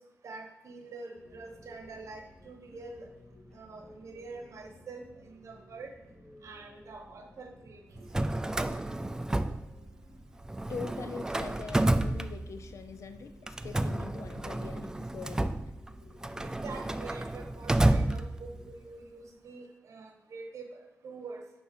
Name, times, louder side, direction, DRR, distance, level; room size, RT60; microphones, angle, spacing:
voice 1, 0.2-3.1 3.5-5.9 6.4-8.1 16.4-21.4, right 3 dB, 70° right, 4 dB, 1.0 m, -45 dB
sound 1, 1.1-18.7, left 1 dB, 10° left, 1.6 m, -55 dB
Drawer open or close, 8.0-10.1 10.4-12.8 13.5-18.7, right 1 dB, 10° right, 0.3 m, -30 dB
voice 2, 10.7-15.6, left 5 dB, 70° left, 9 dB, 0.6 m, -43 dB
10.5 x 3.5 x 4.3 m, 0.98 s
wide cardioid pair, 105°, 5 cm